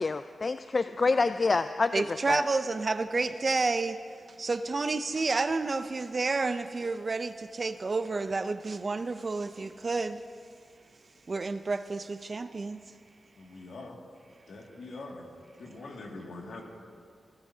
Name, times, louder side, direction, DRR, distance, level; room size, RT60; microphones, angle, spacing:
voice 1, 0.0-2.4, left 3 dB, 50° left, 11 dB, 0.3 m, -27 dB
voice 2, 1.9-4.0 4.3-10.2 11.3-12.8, right 3 dB, 50° right, 11 dB, 0.6 m, -30 dB
voice 3, 13.4-14.0 14.5-15.3 15.6-16.6, left 2 dB, 80° left, -1 dB, 2.3 m, -43 dB
29.5 x 12.0 x 2.9 m, 2.2 s
cardioid pair, 55°, 0 cm